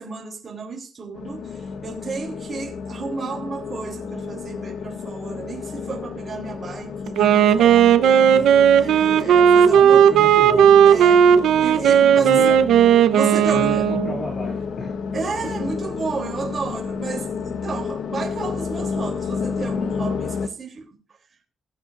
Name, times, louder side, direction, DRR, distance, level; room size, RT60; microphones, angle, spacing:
voice 1, 0.0-8.5 8.7-10.2 10.5-11.3 11.6-12.5 13.1-13.9 15.1-20.8, right 4 dB, 30° right, 3.2 m, -32 dB
sound 1, 1.1-20.5, left 5 dB, 60° left, 1.2 m, -31 dB
Wind instrument woodwind instrument, 7.1-14.2, right 8 dB, 85° right, 0.9 m, -15 dB
voice 2, 9.7-11.0 12.1-12.6 13.5-15.0, left 1 dB, 30° left, 2.7 m, -33 dB
21.0 x 8.2 x 2.6 m
cardioid pair, 175°, 0 cm